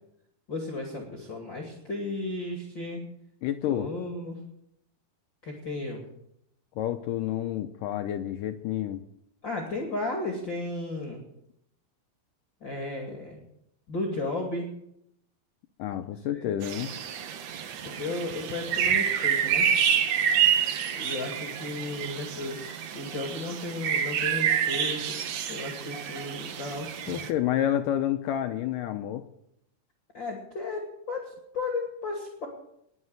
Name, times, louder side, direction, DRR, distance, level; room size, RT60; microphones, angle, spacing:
voice 1, 0.5-3.0 3.7-4.4 5.4-6.0 9.4-11.2 12.6-13.4 13.9-14.7 16.3-16.5 17.8-19.7 20.9-25.2 25.5-26.9 30.1-32.5, left 2 dB, 35° left, 0 dB, 2.6 m, -34 dB
voice 2, 3.4-3.9 6.8-9.0 15.8-16.9 27.1-29.2, left 11 dB, 80° left, 7 dB, 2.0 m, -29 dB
sound 1, 16.6-27.3, right 8 dB, 70° right, 1.7 m, -28 dB
20.5 x 7.4 x 7.9 m, 0.77 s
omnidirectional pair, 4.5 m